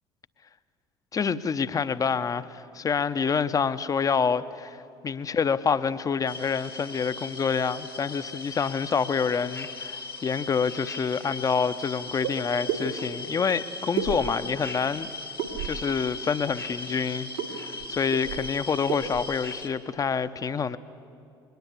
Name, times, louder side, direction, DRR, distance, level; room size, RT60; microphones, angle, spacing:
voice 1, 1.1-4.8 5.0-15.1 15.6-20.8, left 6 dB, 30° left, 0.8 m, -27 dB
sound 1, 6.3-19.7, left 3 dB, 90° left, 1.2 m, -38 dB
sound 2, 12.2-12.4 12.7-12.8 14.0-14.6 15.4-15.9 17.4-17.5 17.8-17.9 18.1-18.5 18.9-19.2, right 9 dB, 75° right, 2.1 m, -30 dB
22.0 x 18.5 x 8.3 m
figure-of-eight pair, 55°, 12 cm